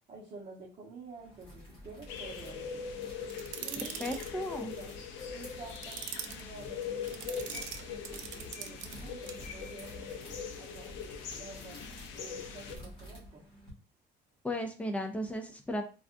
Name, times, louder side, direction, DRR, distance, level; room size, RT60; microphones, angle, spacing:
voice 1, 0.1-2.9 3.6-4.9 5.3-10.9 11.3-13.5, right 3 dB, 30° right, -6 dB, 1.0 m, -50 dB
sound 1, 1.1-13.7, equal, 25° left, 1.3 m, -51 dB
sound 2, 2.1-12.8, left 6 dB, 80° left, 0.6 m, -42 dB
sound 3, 3.3-4.3 5.7-6.4 7.1-9.0 9.3-9.4, right 9 dB, 90° right, 0.4 m, -42 dB
voice 2, 4.0-4.7 14.4-15.8, left 1 dB, 5° left, 4 dB, 0.3 m, -35 dB
3.3 x 2.4 x 2.5 m, 0.35 s
cardioid pair, 165°, 19 cm